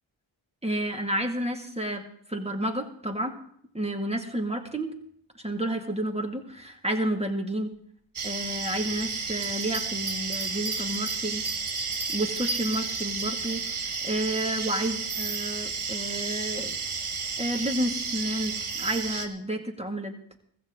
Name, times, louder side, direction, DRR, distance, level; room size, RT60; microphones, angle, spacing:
voice 1, 0.6-2.0 2.3-3.3 3.7-4.9 5.3-7.7 8.2-11.4 12.1-16.7 17.4-20.4, right 1 dB, 10° right, 4 dB, 2.2 m, -30 dB
sound 1, 8.2-19.3, right 5 dB, 75° right, 1.4 m, -32 dB
sound 2, 9.3-13.8, right 2 dB, 40° right, 4.2 m, -35 dB
15.5 x 14.5 x 3.8 m, 0.66 s
wide cardioid pair, 50°, 50 cm